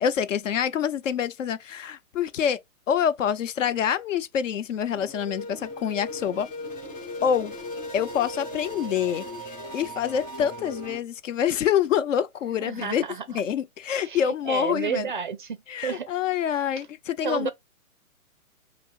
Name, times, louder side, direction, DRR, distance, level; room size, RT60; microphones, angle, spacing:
voice 1, 0.0-2.6 2.9-6.5 7.2-7.5 7.9-13.0 13.3-15.1 15.7-17.5, left 8 dB, 60° left, 0.6 m, -26 dB
sound 1, 5.0-11.0, left 1 dB, 20° left, 1.4 m, -37 dB
voice 2, 12.6-13.4 14.0-16.2 16.5-16.6 17.2-17.5, right 7 dB, 40° right, 0.4 m, -32 dB
5.2 x 2.0 x 2.4 m
hypercardioid pair, 130°, 43 cm